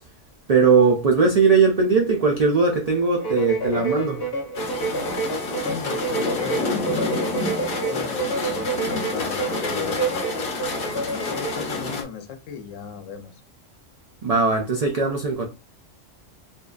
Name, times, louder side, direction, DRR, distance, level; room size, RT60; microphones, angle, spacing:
voice 1, 0.5-4.3 14.2-15.5, right 4 dB, 75° right, 0.3 m, -19 dB
sound 1, 3.2-11.7, right 3 dB, 35° left, 0.4 m, -29 dB
sound 2, 4.5-12.0, left 3 dB, 55° left, 0.7 m, -29 dB
voice 2, 5.5-7.4 7.8-10.2 10.8-13.4, left 7 dB, 80° left, 0.9 m, -36 dB
2.6 x 2.2 x 2.3 m
omnidirectional pair, 1.3 m